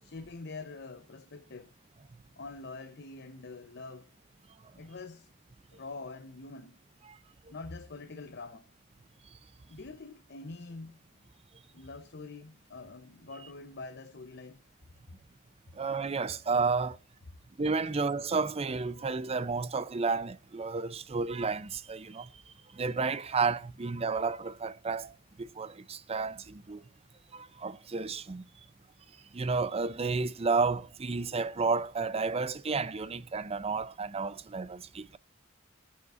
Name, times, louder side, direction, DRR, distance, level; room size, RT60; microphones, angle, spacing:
voice 1, 0.0-1.7 2.4-4.1 4.8-5.3 5.7-6.8 7.5-8.7 9.7-11.0 11.7-14.6, left 3 dB, 55° left, 0.8 m, -45 dB
voice 2, 15.7-17.0 17.6-22.3 22.7-26.8 27.3-28.4 29.3-35.2, right 4 dB, 30° right, 0.5 m, -31 dB
19.5 x 9.5 x 2.5 m
head